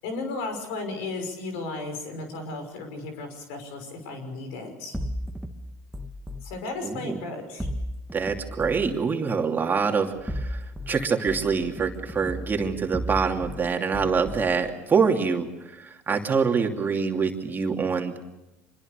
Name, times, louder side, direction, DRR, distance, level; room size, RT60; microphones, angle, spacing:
voice 1, 0.0-5.0 6.4-7.7, left 3 dB, 75° left, 6 dB, 5.9 m, -34 dB
sound 1, 4.9-6.4 7.6-8.9 10.1-10.9 11.3-13.6 13.9-14.6, equal, 5° right, 1.9 m, -34 dB
voice 2, 6.8-7.2 8.1-10.6 10.9-15.5 15.8-18.2, right 5 dB, 30° right, 3 dB, 2.8 m, -25 dB
25.5 x 22.0 x 6.8 m, 0.96 s
hypercardioid pair, 80°, 7 cm